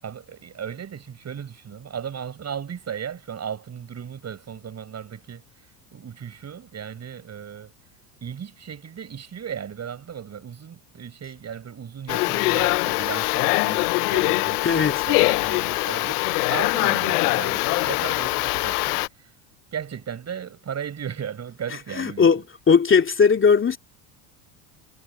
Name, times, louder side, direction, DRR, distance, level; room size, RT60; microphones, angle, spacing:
voice 1, 0.0-5.4 5.9-7.7 8.2-19.3 19.7-22.4, right 8 dB, 35° right, 7.3 m, -36 dB
Domestic sounds home sounds, 12.1-19.1, left 24 dB, 80° left, 6.0 m, -23 dB
voice 2, 14.6-15.0 22.0-22.4 22.7-23.8, left 6 dB, 25° left, 2.7 m, -18 dB
supercardioid pair, 95°, 46 cm